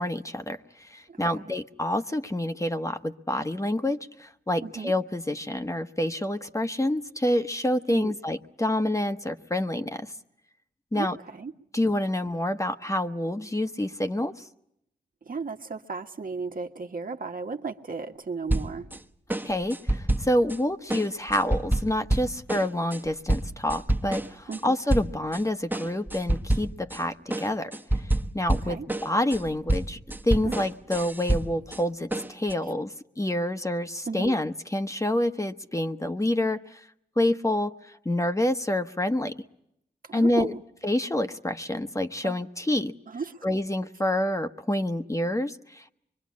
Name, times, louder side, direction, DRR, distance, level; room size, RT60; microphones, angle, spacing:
voice 1, 0.0-10.1 10.9-11.2 11.7-14.3 19.4-27.7 28.3-30.0 30.2-32.9 33.2-36.8 37.2-37.7 38.0-39.3 40.1-40.5 40.8-42.9 43.4-45.9, left 1 dB, 15° left, 8 dB, 1.2 m, -27 dB
voice 2, 1.1-1.5 4.6-4.9 7.9-8.2 10.9-11.5 15.2-18.9 24.5-24.8 28.5-28.9 30.4-30.5 34.1-34.4 40.0-40.6 42.2-42.4 43.1-43.4, right 4 dB, 55° right, 4 dB, 1.6 m, -35 dB
sound 1, 18.5-19.0 19.3-20.6 20.9-24.6 24.9-25.4 25.7-27.0 27.3-31.8 32.1-32.5, right 1 dB, 10° right, 1.4 m, -28 dB
24.5 x 23.0 x 8.6 m, 0.77 s
supercardioid pair, 45°, 18 cm